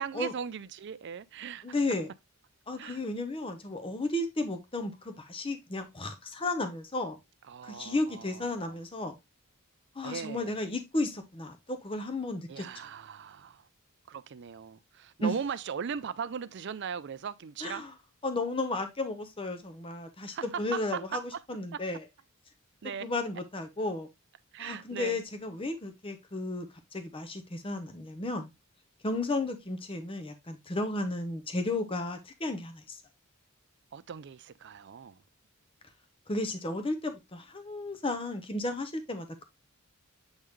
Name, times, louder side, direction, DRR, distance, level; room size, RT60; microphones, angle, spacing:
voice 1, 0.0-1.8 2.8-3.0 7.5-8.8 10.0-10.6 12.5-13.6 14.1-17.8 20.3-21.4 21.7-21.8 22.8-23.1 24.5-25.2 33.9-35.2, right 7 dB, 55° right, 0.4 m, -39 dB
voice 2, 1.6-2.1 2.7-7.2 7.6-9.2 10.0-12.6 15.2-15.3 17.6-17.9 18.2-21.2 21.5-22.0 23.0-24.1 24.6-26.7 26.9-28.5 29.0-33.0 36.3-39.4, left 2 dB, 25° left, 0.9 m, -33 dB
8.1 x 3.8 x 3.1 m
head